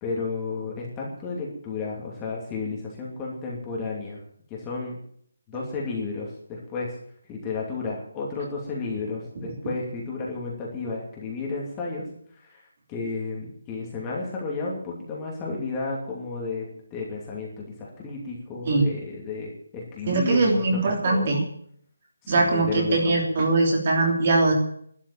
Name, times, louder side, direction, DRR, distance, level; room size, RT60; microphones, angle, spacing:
voice 1, 0.0-4.2 4.5-5.0 5.5-7.0 7.3-12.1 12.4-12.6 12.9-16.6 16.9-21.3 22.2-23.1, left 4 dB, 10° left, -3 dB, 2.7 m, -32 dB
voice 2, 20.1-21.4 22.3-24.5, right 2 dB, 30° right, 1 dB, 3.4 m, -21 dB
12.5 x 10.5 x 8.7 m, 0.64 s
hypercardioid pair, 175°, 0 cm